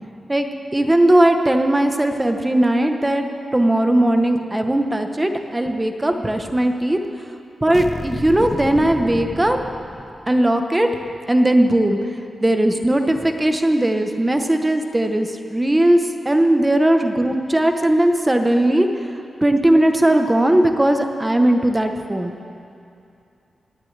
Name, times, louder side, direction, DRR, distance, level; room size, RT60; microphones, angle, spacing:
voice 1, 0.3-3.3 3.5-7.0 7.6-9.6 10.3-10.9 11.3-12.0 12.4-19.1 19.4-22.3, right 1 dB, 15° right, 5 dB, 0.9 m, -18 dB
sound 1, 7.7-10.5, left 2 dB, 25° left, 0.5 m, -31 dB
22.0 x 17.5 x 3.3 m, 2.6 s
wide cardioid pair, 140°, 0 cm